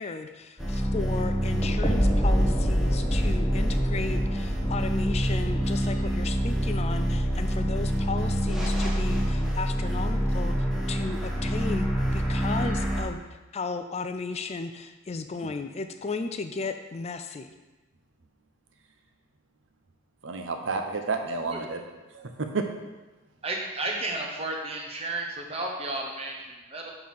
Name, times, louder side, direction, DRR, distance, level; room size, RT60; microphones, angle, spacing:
voice 1, 0.0-10.5 10.9-13.2 13.5-17.5, left 4 dB, 30° left, 8 dB, 0.3 m, -35 dB
sound 1, 0.6-13.0, equal, ahead, 0.9 m, -25 dB
voice 2, 20.2-21.8 22.1-22.6, right 4 dB, 60° right, 5 dB, 0.7 m, -30 dB
voice 3, 23.4-26.9, right 2 dB, 30° right, 0 dB, 0.9 m, -33 dB
6.6 x 3.9 x 5.5 m, 1.2 s
head